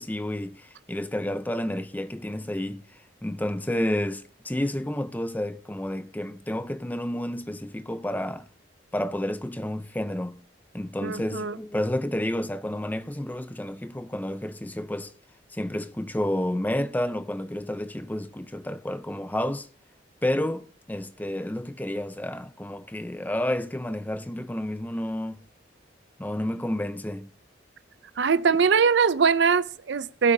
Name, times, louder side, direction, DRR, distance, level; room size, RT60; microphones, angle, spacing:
voice 1, 0.0-2.8 3.2-8.5 8.9-10.4 10.7-15.1 15.5-19.7 20.2-25.4 26.2-27.3, left 1 dB, 10° left, 0.6 m, -30 dB
voice 2, 11.0-11.6 28.2-30.3, right 5 dB, 65° right, 0.5 m, -22 dB
21.0 x 8.4 x 2.8 m
head